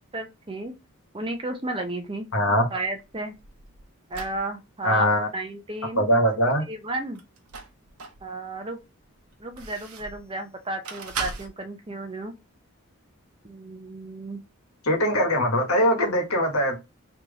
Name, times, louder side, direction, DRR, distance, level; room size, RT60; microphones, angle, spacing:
voice 1, 0.1-0.7 1.1-2.3 2.7-3.3 4.1-6.0 6.7-7.2 8.2-8.8 9.4-12.3 13.4-14.4, right 2 dB, 25° right, 0.6 m, -33 dB
voice 2, 2.3-2.7 4.8-5.3 5.9-6.6 14.8-16.8, equal, 75° left, 1.3 m, -21 dB
sound 1, 2.8-4.4 7.1-8.2 8.8-10.3 10.8-11.5, right 5 dB, 80° right, 0.9 m, -37 dB
3.4 x 2.9 x 3.9 m
head